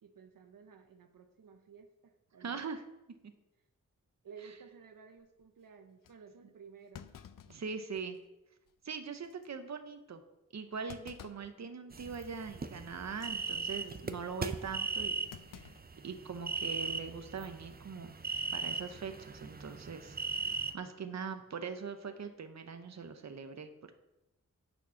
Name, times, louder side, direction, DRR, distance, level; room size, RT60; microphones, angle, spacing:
voice 1, 0.0-2.7 3.2-3.3 4.2-7.1, right 6 dB, 85° right, 7 dB, 0.7 m, -55 dB
voice 2, 2.4-2.8 7.5-8.2 8.8-10.2 10.5-15.2 15.5-15.6 16.0-18.2 18.5-23.7, right 5 dB, 55° right, 7 dB, 0.8 m, -42 dB
Thump thud, 5.2-5.5 6.0-6.2 6.9-8.3 8.7-8.8 9.2-9.5 10.9-11.6 12.0-12.3 13.1-13.4 15.3-16.5 16.8-16.9 18.1-18.4, left 8 dB, 80° left, 0.5 m, -53 dB
sound 1, 11.9-20.7, right 4 dB, 30° right, 0.5 m, -38 dB
9.0 x 4.4 x 5.7 m, 0.94 s
wide cardioid pair, 105°, 32 cm